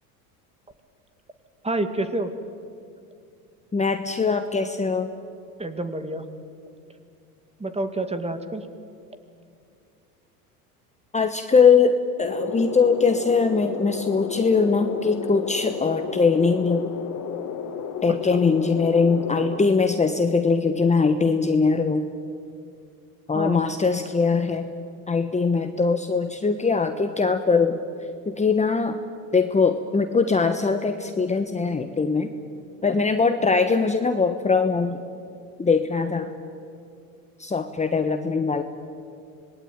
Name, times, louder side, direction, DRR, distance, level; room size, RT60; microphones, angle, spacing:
voice 1, 1.6-2.3 5.6-6.3 7.6-8.7 23.3-23.6, right 2 dB, 15° right, 8 dB, 2.2 m, -28 dB
voice 2, 3.7-5.1 11.1-16.9 18.0-22.1 23.3-24.7 25.1-27.8 28.4-29.0 29.3-32.3 32.8-35.0 35.6-36.3 37.4-38.6, left 4 dB, 15° left, 7 dB, 1.2 m, -21 dB
sound 1, 12.2-19.6, left 7 dB, 40° left, 2.7 m, -32 dB
26.0 x 20.0 x 9.5 m, 2.4 s
supercardioid pair, 95°, 45 cm